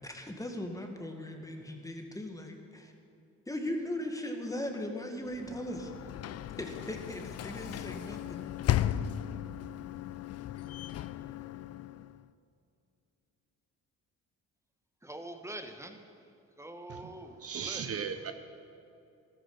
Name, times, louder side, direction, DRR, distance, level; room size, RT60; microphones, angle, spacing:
voice 1, 0.0-2.9 3.5-5.9 6.6-8.4, left 1 dB, 10° left, 3 dB, 1.9 m, -38 dB
Sliding door / Slam, 5.3-12.3, left 11 dB, 55° left, 0.5 m, -36 dB
voice 2, 15.0-16.1 16.6-17.9, right 1 dB, 10° right, 6 dB, 1.3 m, -44 dB
voice 3, 16.9-18.3, right 7 dB, 50° right, 8 dB, 0.9 m, -38 dB
14.0 x 13.0 x 5.5 m, 2.7 s
cardioid pair, 90°, 30 cm